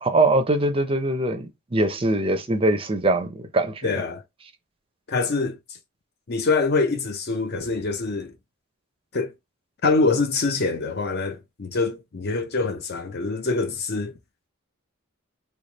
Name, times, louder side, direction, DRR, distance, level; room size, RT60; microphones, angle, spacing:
voice 1, 0.0-4.0, right 2 dB, 25° right, 0.5 m, -22 dB
voice 2, 3.8-4.2 5.1-5.6 6.3-8.3 9.1-9.3 9.8-14.1, left 3 dB, 50° left, 0.6 m, -24 dB
3.3 x 2.3 x 3.9 m
head